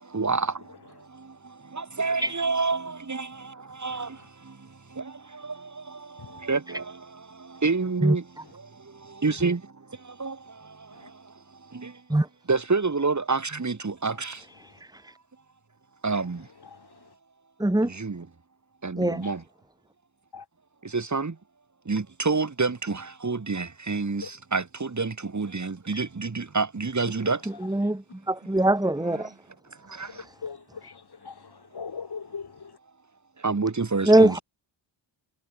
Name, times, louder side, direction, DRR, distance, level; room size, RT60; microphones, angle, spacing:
voice 1, 0.0-12.0 12.5-14.4 16.0-16.5 17.8-18.3 18.8-19.4 20.8-21.4 21.9-27.4 28.8-29.3 29.8-30.2 33.4-34.4, right 4 dB, 35° right, 5.8 m, -29 dB
voice 2, 16.6-17.1 19.1-19.4 20.3-20.4 24.2-24.3 27.8-27.9 30.1-32.8, left 5 dB, 50° left, 4.7 m, -41 dB
voice 3, 27.6-29.3 34.1-34.4, right 1 dB, 10° right, 2.5 m, -21 dB
wide cardioid pair, 125°, 48 cm